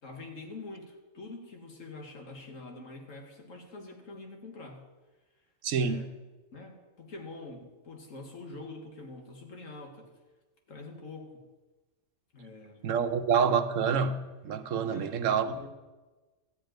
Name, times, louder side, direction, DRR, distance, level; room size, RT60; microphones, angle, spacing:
voice 1, 0.0-4.8 5.8-6.1 6.5-10.1 10.7-11.4 12.3-12.9 14.8-15.2 15.5-15.7, left 3 dB, 90° left, 2.0 m, -45 dB
voice 2, 5.6-6.0 12.8-14.2 14.4-15.6, right 6 dB, 85° right, 1.1 m, -27 dB
12.5 x 5.1 x 9.0 m
omnidirectional pair, 1.3 m